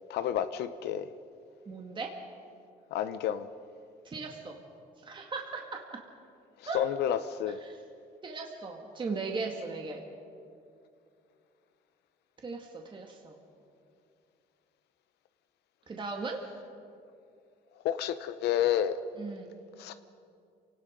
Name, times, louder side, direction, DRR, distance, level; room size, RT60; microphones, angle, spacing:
voice 1, 0.1-1.1 2.9-3.5 6.7-7.6 17.8-18.9 19.8-19.9, left 10 dB, 80° left, 11 dB, 0.8 m, -30 dB
voice 2, 1.7-2.1 4.1-4.6 5.1-5.8 6.7-6.9 7.6-7.8 8.2-10.0 12.4-13.4 15.9-16.4 19.2-19.5, right 4 dB, 30° right, 1 dB, 2.0 m, -37 dB
28.0 x 18.5 x 5.2 m, 2.5 s
cardioid pair, 110°, 17 cm